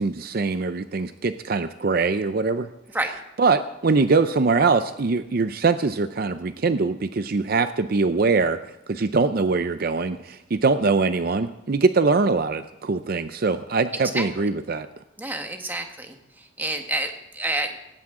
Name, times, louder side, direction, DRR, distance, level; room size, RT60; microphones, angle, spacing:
voice 1, 0.0-2.7 3.4-8.6 8.9-14.9, right 4 dB, 50° right, 11 dB, 0.5 m, -22 dB
voice 2, 15.2-16.1 16.6-17.8, right 2 dB, 10° right, 4 dB, 1.4 m, -28 dB
18.0 x 16.0 x 3.7 m, 0.91 s
head